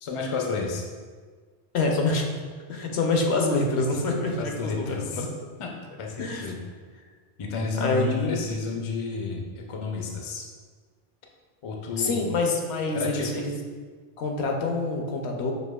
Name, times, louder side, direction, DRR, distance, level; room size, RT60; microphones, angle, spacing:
voice 1, 0.0-0.8 4.4-5.3 5.6-5.7 6.0-6.6 7.4-10.5 11.6-12.3 12.9-13.3, left 4 dB, 45° left, 0 dB, 0.4 m, -31 dB
voice 2, 1.7-2.2 2.7-5.3 6.2-6.5 7.8-8.5 12.0-13.5 14.2-15.5, left 3 dB, 75° left, 1 dB, 0.9 m, -26 dB
6.5 x 2.8 x 2.3 m, 1.5 s
omnidirectional pair, 1.1 m